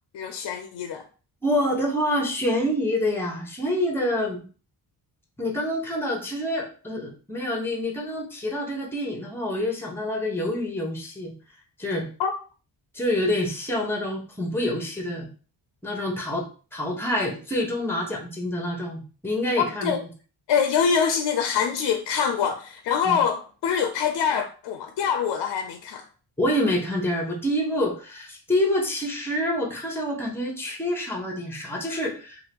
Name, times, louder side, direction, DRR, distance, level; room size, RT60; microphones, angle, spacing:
voice 1, 0.1-1.0 12.2-12.3 19.6-20.0 20.5-26.0, left 7 dB, 70° left, 0.5 m, -24 dB
voice 2, 1.4-4.4 5.4-11.3 11.8-12.1 12.9-15.3 15.8-16.4 16.7-19.9 23.1-23.2 26.4-32.4, left 1 dB, 5° left, 0.9 m, -27 dB
2.8 x 2.4 x 3.4 m
cardioid pair, 90°, 43 cm